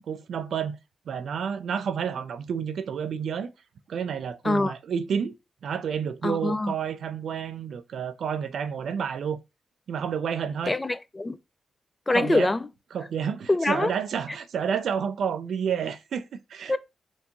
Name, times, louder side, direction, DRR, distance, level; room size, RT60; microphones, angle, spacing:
voice 1, 0.1-0.8 1.1-3.5 3.9-5.3 5.6-9.4 9.9-10.7 12.1-12.5 12.9-16.8, right 7 dB, 70° right, 0.4 m, -30 dB
voice 2, 6.2-6.7 10.7-11.4 12.1-12.7 13.5-13.9 16.7-16.8, left 2 dB, 30° left, 0.4 m, -24 dB
4.4 x 2.7 x 2.8 m
supercardioid pair, 40°, 0 cm